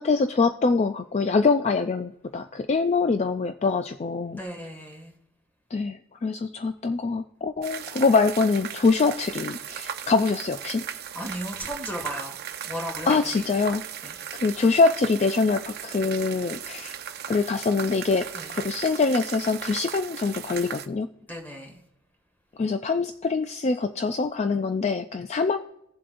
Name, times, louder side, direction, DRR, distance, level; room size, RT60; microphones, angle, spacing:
voice 1, 0.0-4.4 5.7-10.8 13.1-13.8 14.3-16.9 17.3-21.1 22.6-25.6, left 4 dB, 30° left, 8 dB, 0.3 m, -24 dB
voice 2, 4.3-5.1 11.1-12.4 12.6-13.5 14.0-14.1 18.4-18.5 21.3-21.7, equal, 10° left, 2 dB, 1.8 m, -35 dB
sound 1, 7.6-20.9, right 9 dB, 50° right, 0.6 m, -37 dB
18.5 x 7.5 x 2.5 m, 0.80 s
head